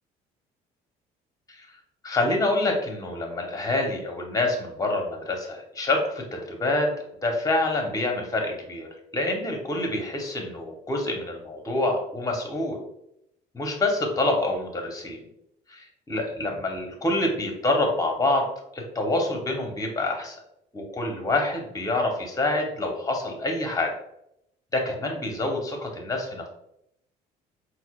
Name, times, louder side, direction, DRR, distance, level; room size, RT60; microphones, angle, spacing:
voice 1, 2.0-6.9 7.2-8.9 9.1-12.8 13.5-15.2 15.7-18.5 18.7-20.3 20.7-23.9 24.7-26.5, left 2 dB, 20° left, 2 dB, 0.9 m, -26 dB
4.2 x 2.1 x 2.3 m, 0.77 s
supercardioid pair, 85°, 19 cm